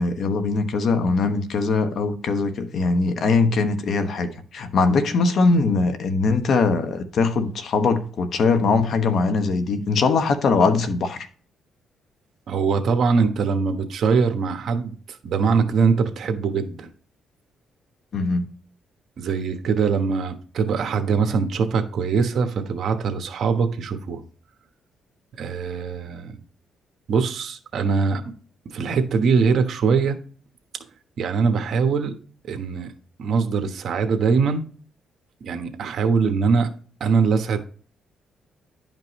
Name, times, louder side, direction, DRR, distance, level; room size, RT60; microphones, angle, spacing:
voice 1, 0.0-11.3 18.1-18.5, left 4 dB, 60° left, 1.1 m, -21 dB
voice 2, 12.5-16.9 19.2-24.2 25.4-26.4 27.1-28.2 28.7-30.2 31.2-32.1 32.5-32.9 33.2-34.6 35.4-36.7 37.0-37.6, right 5 dB, 60° right, 1.2 m, -22 dB
11.0 x 5.3 x 3.2 m
cardioid pair, 90°, 0 cm